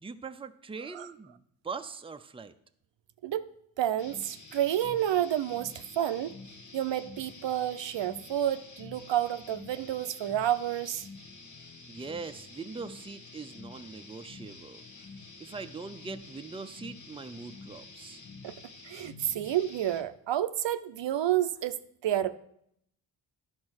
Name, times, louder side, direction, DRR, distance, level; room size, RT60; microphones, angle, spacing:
voice 1, 0.0-2.5 11.9-14.8 15.4-18.2, right 4 dB, 10° right, 8 dB, 0.5 m, -42 dB
voice 2, 3.8-6.3 6.7-11.1 18.4-18.5 18.8-22.4, right 11 dB, 65° right, 12 dB, 0.6 m, -30 dB
sound 1, 4.0-20.0, left 4 dB, 40° left, 1.2 m, -49 dB
10.5 x 4.3 x 6.3 m, 0.73 s
cardioid pair, 45°, 47 cm